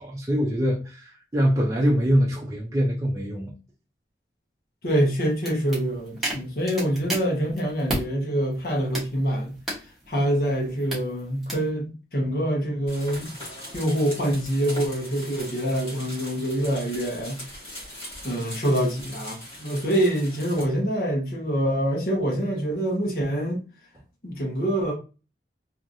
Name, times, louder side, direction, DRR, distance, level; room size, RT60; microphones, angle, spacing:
voice 1, 0.0-3.5, equal, 20° right, 0.6 m, -24 dB
voice 2, 4.8-9.6 10.1-13.3 13.7-17.4 18.2-23.6 24.2-24.9, right 1 dB, 55° left, 1.2 m, -25 dB
sound 1, 5.0-8.1 8.5-11.7, right 1 dB, ahead, 1.1 m, -35 dB
sound 2, 12.9-20.6, left 1 dB, 30° left, 1.4 m, -40 dB
3.2 x 2.8 x 2.6 m
head